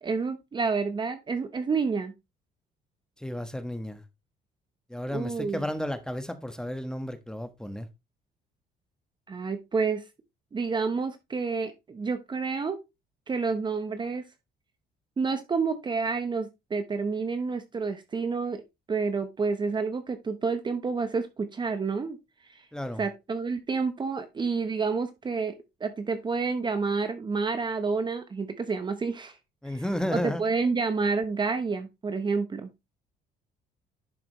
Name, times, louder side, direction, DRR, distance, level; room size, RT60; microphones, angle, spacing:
voice 1, 0.0-2.1 5.1-5.6 9.3-10.0 10.5-12.8 13.3-14.2 15.2-18.6 18.9-22.2 22.5-22.7 23.0-25.5 25.8-29.4 30.1-32.7, right 4 dB, 25° right, 0.9 m, -29 dB
voice 2, 3.2-4.0 4.9-7.9 22.7-23.0 29.6-30.4, left 1 dB, 5° left, 1.4 m, -32 dB
11.0 x 5.8 x 3.1 m
cardioid pair, 110°, 17 cm